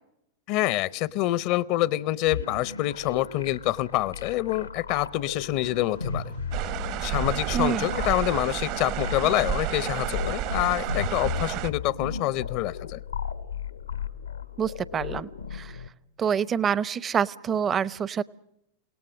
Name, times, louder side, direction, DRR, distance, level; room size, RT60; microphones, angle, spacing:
voice 1, 0.5-6.3 7.0-13.0, left 16 dB, 50° left, 20 dB, 0.8 m, -26 dB
sound 1, 2.3-15.9, left 6 dB, 85° left, 1.1 m, -35 dB
sound 2, 5.6-10.6, right 9 dB, 70° right, 3.2 m, -54 dB
sound 3, 6.5-11.7, right 13 dB, 50° right, 1.2 m, -31 dB
voice 2, 7.5-7.9 14.6-15.8 16.2-18.2, right 8 dB, 25° right, 21 dB, 0.8 m, -27 dB
29.5 x 18.0 x 6.3 m, 0.79 s
figure-of-eight pair, 90°, 0 cm